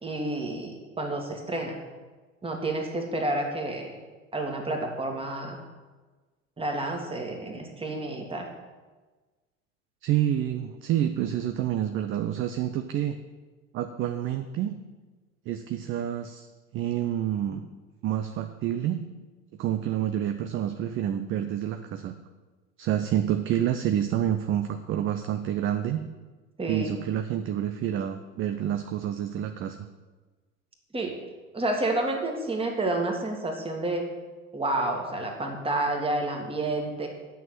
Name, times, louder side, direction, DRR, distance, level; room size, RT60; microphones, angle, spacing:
voice 1, 0.0-1.8 2.4-3.9 4.3-5.6 6.6-8.5 26.6-26.9 30.9-31.1 31.5-34.1 34.5-37.1, right 2 dB, 15° right, 2 dB, 1.9 m, -29 dB
voice 2, 10.0-13.1 13.7-14.8 15.5-16.5 16.7-17.7 18.0-19.0 19.6-22.1 22.8-26.0 26.7-29.9, right 11 dB, 30° right, 7 dB, 0.6 m, -28 dB
9.2 x 6.1 x 7.6 m, 1.3 s
figure-of-eight pair, 75°, 41 cm